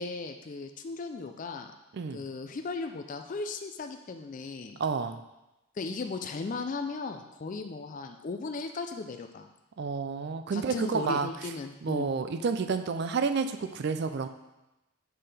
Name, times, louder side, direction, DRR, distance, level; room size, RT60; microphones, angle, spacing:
voice 1, 0.0-1.7 2.1-4.8 5.8-9.5 10.5-12.1, left 3 dB, 40° left, 6 dB, 0.4 m, -36 dB
voice 2, 4.8-5.2 9.8-11.3 11.8-14.3, right 5 dB, 50° right, 9 dB, 0.4 m, -30 dB
6.7 x 5.7 x 3.4 m, 0.98 s
head